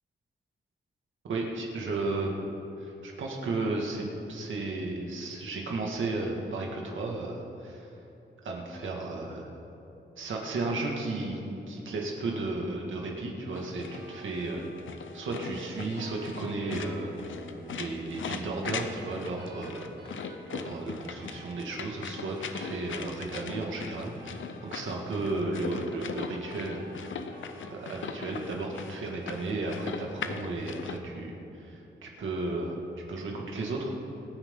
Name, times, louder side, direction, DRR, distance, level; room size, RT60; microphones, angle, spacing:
voice 1, 1.2-2.3 2.8-7.9 8.4-9.5 10.2-11.4 11.7-14.6 15.1-17.3 17.7-19.9 20.5-24.3 24.6-26.8 27.7-32.8 33.1-33.9, right 2 dB, 85° right, -1 dB, 2.2 m, -34 dB
sound 1, 13.5-31.0, left 6 dB, 85° left, 0.8 m, -40 dB
sound 2, 13.9-28.5, right 1 dB, 55° right, 2.6 m, -51 dB
26.5 x 9.5 x 3.9 m, 2.9 s
wide cardioid pair, 155°, 20 cm